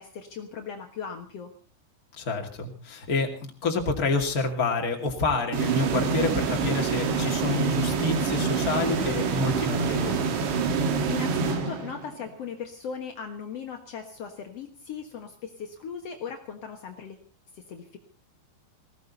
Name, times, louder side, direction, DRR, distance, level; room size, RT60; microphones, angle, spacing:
voice 1, 0.0-1.5 11.1-17.2 17.5-18.0, left 6 dB, 75° left, 3 dB, 1.4 m, -38 dB
voice 2, 2.2-10.3, left 3 dB, 30° left, 3 dB, 1.9 m, -28 dB
sound 1, 5.5-12.3, right 5 dB, 75° right, 4.2 m, -26 dB
20.0 x 16.5 x 4.1 m, 0.36 s
omnidirectional pair, 5.2 m